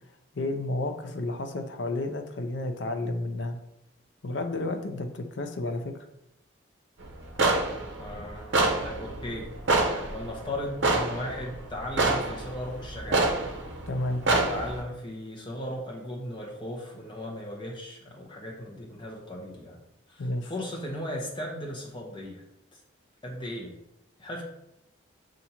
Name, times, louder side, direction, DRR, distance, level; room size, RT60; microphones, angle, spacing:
voice 1, 0.3-3.6 4.2-5.9 13.9-14.2 20.2-20.5, left 2 dB, 70° left, 6 dB, 0.5 m, -31 dB
sound 1, 7.0-14.8, right 2 dB, 75° right, 0.7 m, -27 dB
voice 2, 8.0-9.5 9.8-13.4 14.3-19.8 20.1-22.4 22.7-22.8 23.2-23.7 24.2-24.4, left 1 dB, 25° left, -1 dB, 0.9 m, -37 dB
6.9 x 2.5 x 2.9 m, 0.84 s
head